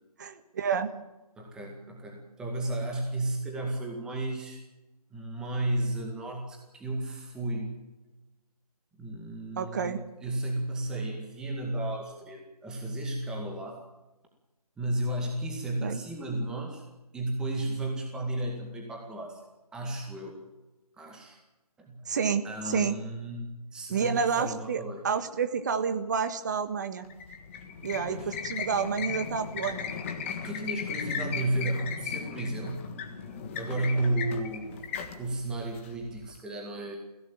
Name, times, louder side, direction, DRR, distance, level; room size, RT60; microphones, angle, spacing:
voice 1, 0.2-1.0 9.6-10.0 15.8-16.0 22.1-22.9 23.9-27.1 27.8-29.9, right 6 dB, 30° right, 10 dB, 1.4 m, -29 dB
voice 2, 1.4-4.6 5.1-7.7 9.0-13.8 14.8-16.8 17.1-19.4 19.7-20.4 21.0-21.4 21.8-22.1 22.4-25.0 28.0-28.3 30.4-32.8 33.5-34.7 35.1-37.0, right 1 dB, 5° right, 0 dB, 2.1 m, -33 dB
sound 1, 27.0-36.4, left 6 dB, 20° left, 1.6 m, -37 dB
22.0 x 17.0 x 9.1 m, 1.1 s
figure-of-eight pair, 160°, 20 cm